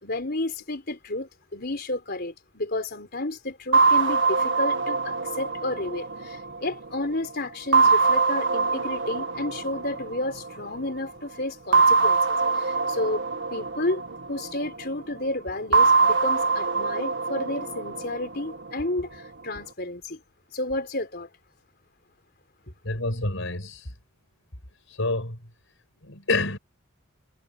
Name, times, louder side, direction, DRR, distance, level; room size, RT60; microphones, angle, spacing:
voice 1, 0.0-13.2 13.5-14.0 14.3-20.2 20.5-21.3, left 2 dB, 50° left, 4.1 m, -31 dB
sound 1, 3.7-7.1 7.7-10.6 11.7-14.8 15.7-18.8, right 4 dB, 60° right, 1.8 m, -23 dB
voice 2, 22.8-23.9 24.9-25.4 26.0-26.6, left 2 dB, 65° left, 5.4 m, -28 dB
head